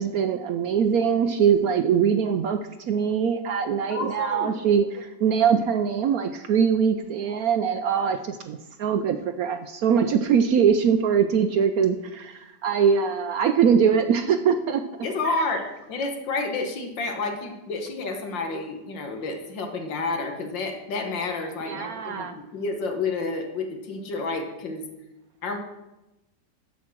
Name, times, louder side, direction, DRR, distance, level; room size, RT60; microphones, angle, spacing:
voice 1, 0.0-2.6 2.9-14.8 21.7-22.3, right 7 dB, 70° right, 8 dB, 0.9 m, -22 dB
voice 2, 3.9-4.6 15.0-24.9 25.4-25.6, left 3 dB, 85° left, 4 dB, 2.0 m, -30 dB
8.0 x 7.5 x 6.0 m, 0.98 s
omnidirectional pair, 2.0 m